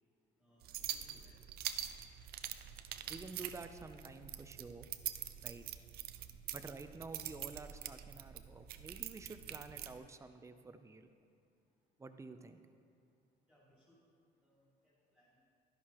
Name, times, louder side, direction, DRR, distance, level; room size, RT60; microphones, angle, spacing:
voice 1, 0.4-1.4 13.5-14.0 14.4-15.4, equal, 5° left, -9 dB, 2.7 m, -69 dB
sound 1, 0.6-10.0, right 11 dB, 65° right, 0.5 m, -45 dB
voice 2, 3.1-4.9 5.4-5.7 6.5-11.1 12.0-12.6, right 3 dB, 15° right, 9 dB, 0.5 m, -50 dB
11.5 x 11.0 x 3.0 m, 2.4 s
cardioid pair, 110°, 17 cm